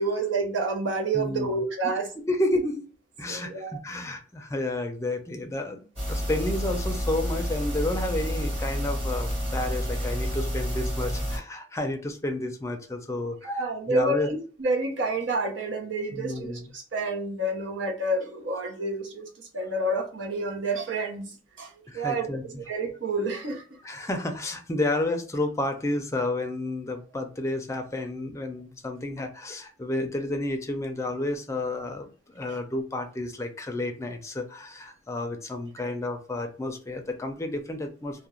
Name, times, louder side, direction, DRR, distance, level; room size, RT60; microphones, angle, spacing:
voice 1, 0.0-2.1 3.3-3.7 13.4-21.7 21.9-22.4 22.7-23.8, right 2 dB, 90° right, 1 dB, 0.7 m, -29 dB
voice 2, 1.1-2.0 2.3-2.8 3.2-14.3 16.1-16.7 21.9-22.7 23.8-38.3, left 2 dB, 15° left, 5 dB, 0.4 m, -31 dB
sound 1, 6.0-11.4, equal, 35° right, 1.3 m, -29 dB
2.4 x 2.1 x 3.0 m, 0.37 s
head